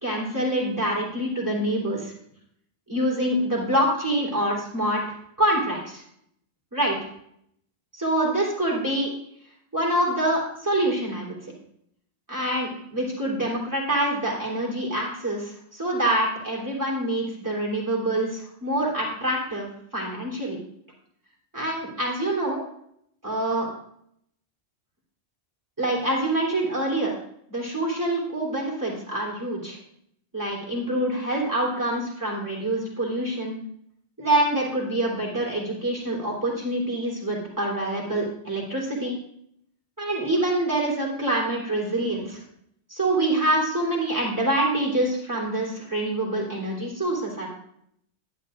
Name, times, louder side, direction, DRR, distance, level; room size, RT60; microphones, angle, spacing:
voice 1, 0.0-2.1 2.9-5.0 5.4-6.0 6.7-7.0 7.9-9.1 9.7-11.4 12.3-20.6 21.5-22.6 23.2-23.7 25.8-27.1 27.5-29.8 30.3-33.6 34.2-39.2 40.0-42.4 42.9-47.5, right 1 dB, 15° right, -4 dB, 3.2 m, -26 dB
12.0 x 9.7 x 2.5 m, 0.70 s
omnidirectional pair, 1.1 m